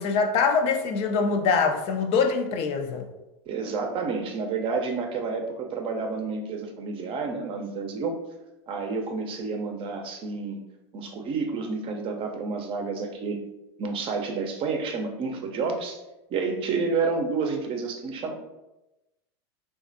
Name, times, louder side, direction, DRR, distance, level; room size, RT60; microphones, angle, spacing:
voice 1, 0.0-3.1, left 5 dB, 45° left, 6 dB, 0.4 m, -24 dB
voice 2, 3.5-8.2 8.7-10.6 10.9-13.4 13.8-16.0 16.3-18.3, right 4 dB, 40° right, 3 dB, 0.6 m, -29 dB
3.2 x 2.4 x 2.6 m, 0.96 s
hypercardioid pair, 105°, 14 cm